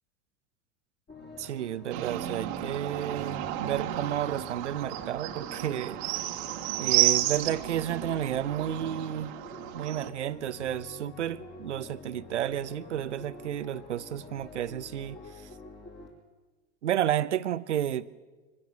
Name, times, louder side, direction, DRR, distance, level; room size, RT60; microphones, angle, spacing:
sound 1, 1.1-16.1, left 3 dB, 30° left, 6.0 m, -47 dB
voice 1, 1.4-6.0 6.8-9.3 9.7-15.2 16.8-18.2, right 11 dB, 85° right, 0.7 m, -31 dB
sound 2, 1.9-10.1, right 15 dB, 60° right, 1.5 m, -32 dB
25.0 x 16.0 x 6.5 m
hypercardioid pair, 85°, 35 cm